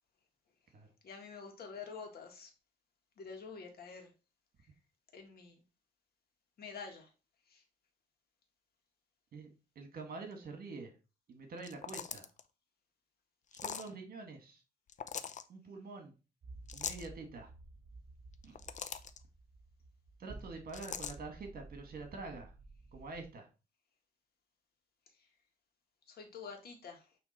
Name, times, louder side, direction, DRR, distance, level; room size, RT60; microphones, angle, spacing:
voice 1, 1.0-2.5 3.2-4.1 4.6-4.7 5.1-5.6 6.6-7.1 7.5-7.6 25.1-25.3 26.1-27.2, left 5 dB, 70° left, 1.8 m, -48 dB
voice 2, 9.7-10.9 11.3-12.3 13.5-14.6 15.5-16.1 16.7-17.5 18.4-18.6 20.2-22.5 22.9-23.5, right 3 dB, 60° right, 1.7 m, -46 dB
sound 1, 11.6-12.4 13.5-13.9 14.9-15.4 16.7-17.1 18.3-19.2 20.7-21.2, left 7 dB, 50° left, 0.6 m, -41 dB
sound 2, 16.4-23.3, right 3 dB, 35° right, 3.3 m, -53 dB
8.7 x 3.2 x 4.3 m
cardioid pair, 120°, 17 cm